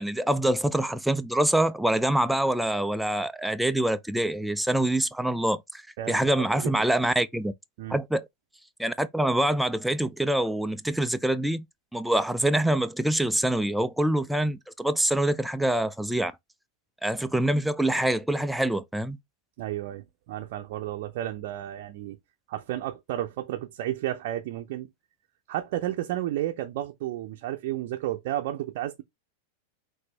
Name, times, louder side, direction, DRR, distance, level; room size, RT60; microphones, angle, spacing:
voice 1, 0.0-5.8 6.1-7.5 7.9-8.2 8.8-11.6 11.9-16.3 17.0-19.2, right 1 dB, ahead, 0.4 m, -25 dB
voice 2, 6.0-6.9 7.8-8.0 19.6-22.2 22.5-24.9 25.5-29.0, right 13 dB, 50° right, 0.6 m, -32 dB
5.8 x 2.6 x 3.2 m
figure-of-eight pair, 90°, 0 cm